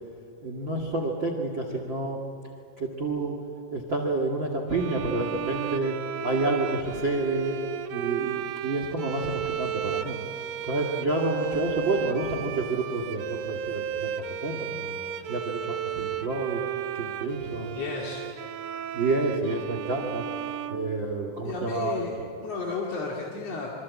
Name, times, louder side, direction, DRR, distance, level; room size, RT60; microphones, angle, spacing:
voice 1, 0.4-2.2 2.8-3.3 3.7-5.9 6.2-7.6 7.9-10.2 10.7-14.1 14.4-15.0 15.3-16.6 17.0-17.8 18.9-20.2 20.7-22.3, right 2 dB, 35° right, 3 dB, 2.2 m, -29 dB
sound 1, 4.7-21.5, right 9 dB, 80° right, 2.0 m, -34 dB
voice 2, 17.7-18.2 21.4-22.1 22.4-23.7, left 4 dB, 45° left, -3 dB, 2.8 m, -33 dB
27.0 x 25.0 x 8.5 m, 2.4 s
omnidirectional pair, 5.1 m